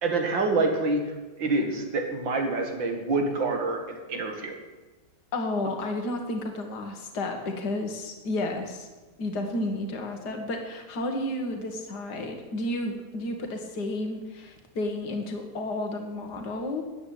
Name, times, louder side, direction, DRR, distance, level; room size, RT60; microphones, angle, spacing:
voice 1, 0.0-1.0 1.4-4.6, right 3 dB, 85° right, 4 dB, 2.7 m, -26 dB
voice 2, 5.3-8.9 9.2-16.8, left 1 dB, 65° left, 4 dB, 2.3 m, -32 dB
13.5 x 9.6 x 8.5 m, 1.2 s
omnidirectional pair, 2.0 m